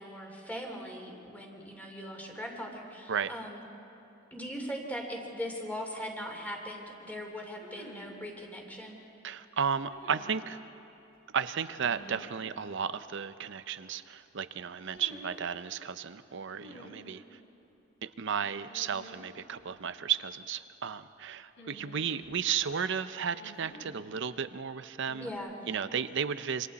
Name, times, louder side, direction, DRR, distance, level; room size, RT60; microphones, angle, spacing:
voice 1, 0.0-3.6 4.3-9.0 25.2-25.5, equal, 10° left, 1 dB, 2.9 m, -40 dB
sound 1, 5.6-5.7 7.6-8.2 9.9-10.4 11.8-12.4 14.9-15.4 16.6-17.2 18.7-19.3 19.6-19.7 21.6-22.5 23.4-24.0 25.0-25.4, equal, 70° left, 4.3 m, -50 dB
voice 2, 9.2-10.6 11.3-17.4 18.0-25.3 25.7-26.7, right 7 dB, 65° right, 13 dB, 0.7 m, -34 dB
27.0 x 26.0 x 4.2 m, 2.9 s
head